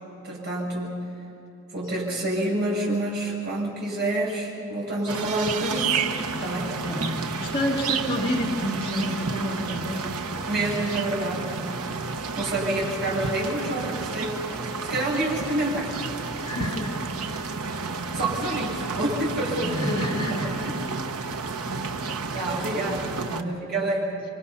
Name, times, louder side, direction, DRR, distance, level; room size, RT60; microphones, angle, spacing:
voice 1, 0.2-1.0 1.7-6.0 6.4-6.8 10.5-11.6 12.3-14.4 14.9-15.9 17.4-17.5 17.8-20.8 21.7-21.8 22.3-24.3, right 1 dB, 50° right, -4 dB, 7.7 m, -28 dB
sound 1, 5.1-23.4, right 4 dB, 80° right, 1.1 m, -31 dB
voice 2, 6.9-10.0 10.5-10.9 11.9-12.1 16.4-17.5 19.6-20.5 23.2-23.5, equal, 25° left, -3 dB, 2.6 m, -29 dB
28.5 x 24.5 x 5.8 m, 2.9 s
head